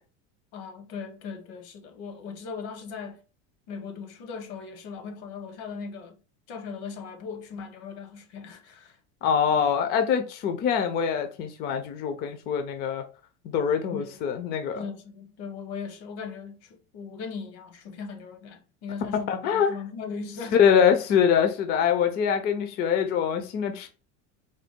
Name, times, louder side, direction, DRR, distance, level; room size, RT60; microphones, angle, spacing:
voice 1, 0.5-3.2 3.7-6.2 6.5-9.0 13.9-14.2 14.7-20.6, left 5 dB, 80° left, 1.0 m, -38 dB
voice 2, 9.2-13.0 13.4-14.8 19.3-19.7 20.5-23.9, left 7 dB, 30° left, 0.4 m, -24 dB
3.8 x 2.2 x 3.5 m
cardioid pair, 160°, 32 cm